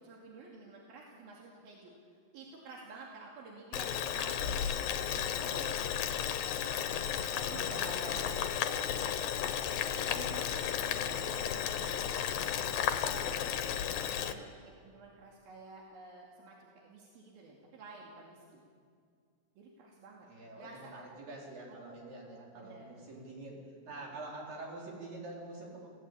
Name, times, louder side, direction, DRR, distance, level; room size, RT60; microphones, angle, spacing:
voice 1, 0.0-5.8 6.7-8.5 10.1-18.6 19.6-20.3 20.5-20.9 22.5-22.9 23.9-24.0, right 3 dB, 90° right, -2 dB, 4.3 m, -52 dB
Boiling, 3.7-14.3, left 9 dB, 80° left, 2.8 m, -33 dB
voice 2, 7.5-8.2 11.0-11.5 20.3-23.6 23.9-25.9, right 2 dB, 70° right, -3 dB, 6.1 m, -46 dB
28.5 x 17.0 x 8.5 m, 2.2 s
omnidirectional pair, 4.1 m